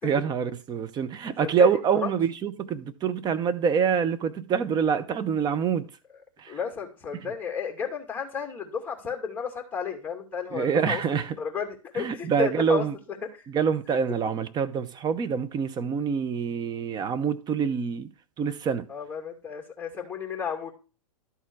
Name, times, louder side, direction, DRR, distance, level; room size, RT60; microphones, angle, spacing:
voice 1, 0.0-5.9 6.4-6.6 10.5-11.4 12.0-12.9 13.5-18.1 18.4-18.9, right 6 dB, 25° right, 0.8 m, -26 dB
voice 2, 1.4-2.1 6.5-11.0 11.4-12.8 13.4-13.5 18.9-20.7, left 6 dB, 10° left, 2.5 m, -33 dB
12.5 x 4.4 x 4.7 m
hypercardioid pair, 125°, 18 cm